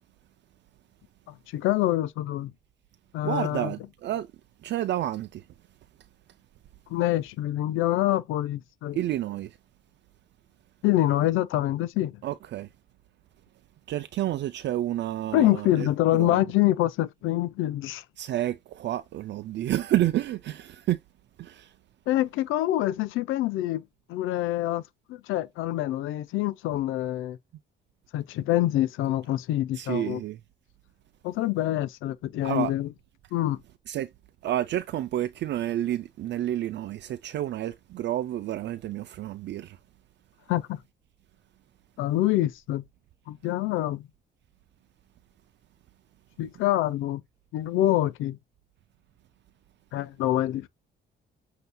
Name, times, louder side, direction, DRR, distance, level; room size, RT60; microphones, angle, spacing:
voice 1, 1.5-2.5 3.1-3.7 6.9-9.0 10.8-12.2 15.3-18.0 22.1-23.8 24.1-24.8 25.1-27.4 28.1-30.2 31.2-32.9 33.3-33.6 40.5-40.8 42.0-42.8 43.3-44.1 46.4-47.2 47.5-48.4 49.9-50.7, left 14 dB, 85° left, 0.5 m, -26 dB
voice 2, 3.2-4.3 4.6-5.4 8.9-9.6 12.2-12.7 13.9-15.9 16.1-16.4 18.2-21.0 21.4-21.7 29.8-30.4 32.4-32.7 33.9-34.1 34.4-39.8, right 13 dB, 65° right, 0.4 m, -30 dB
7.8 x 2.8 x 2.2 m
cardioid pair, 90°, 20 cm